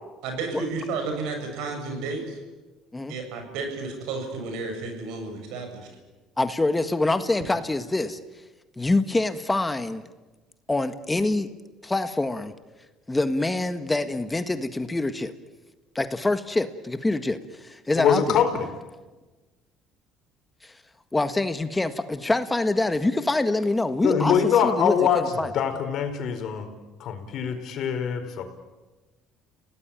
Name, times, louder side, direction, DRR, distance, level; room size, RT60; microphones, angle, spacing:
voice 1, 0.2-2.4 3.1-5.8, right 3 dB, 75° right, 5 dB, 7.6 m, -32 dB
voice 2, 6.4-8.2 8.8-10.1 10.7-11.5 11.8-12.5 13.1-15.3 15.9-18.4 20.6-20.8 21.1-25.5, left 2 dB, 15° left, 9 dB, 1.7 m, -25 dB
voice 3, 18.0-18.7 24.0-26.7 27.0-28.4, left 7 dB, 60° left, 7 dB, 4.6 m, -23 dB
30.0 x 18.0 x 9.0 m, 1.2 s
supercardioid pair, 80°, 0 cm